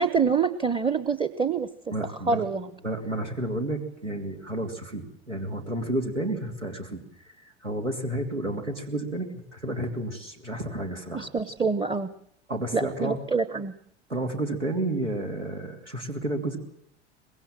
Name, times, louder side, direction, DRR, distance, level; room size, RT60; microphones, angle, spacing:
voice 1, 0.0-1.7 2.0-2.7 11.1-12.1 12.7-13.7, right 5 dB, 15° right, 13 dB, 1.0 m, -26 dB
voice 2, 1.9-2.4 2.8-7.0 7.4-11.5 12.5-13.2 14.1-16.6, right 1 dB, 85° right, 4 dB, 3.1 m, -31 dB
24.5 x 21.5 x 7.6 m, 0.68 s
figure-of-eight pair, 80°, 35 cm